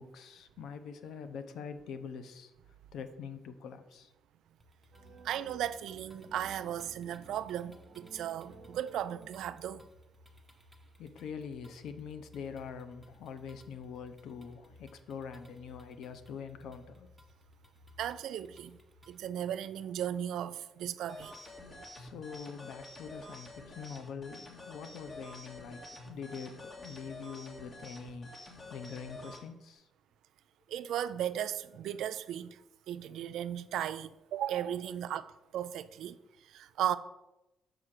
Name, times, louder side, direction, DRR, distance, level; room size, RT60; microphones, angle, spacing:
voice 1, 0.0-2.5 2.9-4.1 11.0-17.1 21.9-28.4 28.7-29.9, left 6 dB, 75° left, 0.7 m, -44 dB
sound 1, 4.6-19.3, left 1 dB, 5° left, 1.2 m, -59 dB
sound 2, 4.9-9.9, right 5 dB, 60° right, 0.8 m, -57 dB
voice 2, 5.2-9.8 18.0-18.8 19.1-21.3 30.7-32.6 32.9-36.2 36.5-37.0, right 10 dB, 80° right, 0.3 m, -36 dB
sound 3, 21.1-29.4, left 1 dB, 40° left, 1.9 m, -48 dB
6.0 x 4.8 x 6.5 m
cardioid pair, 90°, 0 cm